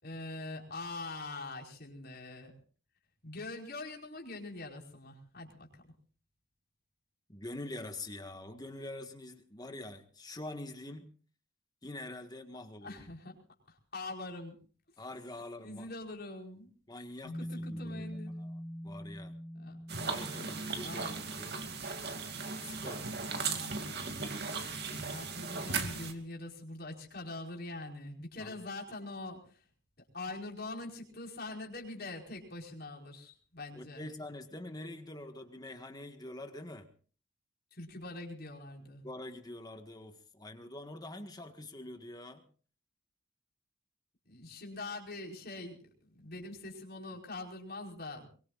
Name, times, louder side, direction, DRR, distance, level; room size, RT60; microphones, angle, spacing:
voice 1, 0.0-2.5 3.2-5.7 12.8-13.4 13.7-14.6 15.6-16.7 17.4-18.3 19.5-21.2 23.3-23.8 25.0-29.6 30.1-34.1 37.7-39.0 44.2-48.3, left 2 dB, 50° left, 0 dB, 4.9 m, -44 dB
voice 2, 7.3-11.1 11.8-13.1 15.0-15.9 16.9-18.1 18.4-18.5 18.8-19.3 20.1-21.6 22.6-23.6 28.4-28.6 33.7-36.9 39.0-42.4, left 1 dB, 20° left, 6 dB, 1.6 m, -45 dB
sound 1, 17.2-26.7, equal, 35° right, 5.6 m, -47 dB
sound 2, 19.9-26.1, right 4 dB, 55° right, 2.5 m, -37 dB
23.5 x 23.0 x 2.5 m, 0.41 s
head